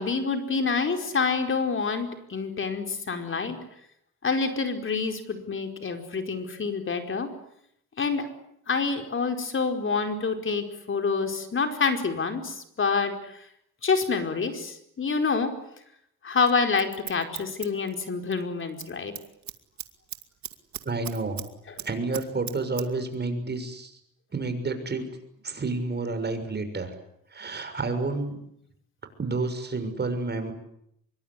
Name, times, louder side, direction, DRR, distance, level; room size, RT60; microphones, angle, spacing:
voice 1, 0.0-3.6 4.2-7.3 8.0-8.3 8.7-13.5 13.8-15.5 16.2-19.1, left 4 dB, 40° left, 6 dB, 5.0 m, -27 dB
Scissors, 16.4-18.4 18.7-18.9 19.2-21.5 21.8-22.9 23.1-23.2, right 10 dB, 65° right, 2.5 m, -38 dB
voice 2, 20.8-21.5 21.8-24.0 24.3-25.1 25.4-26.9 27.3-28.4 29.2-30.5, right 3 dB, 35° right, 8 dB, 6.6 m, -30 dB
25.0 x 23.5 x 9.9 m, 0.74 s
cardioid pair, 90°, 30 cm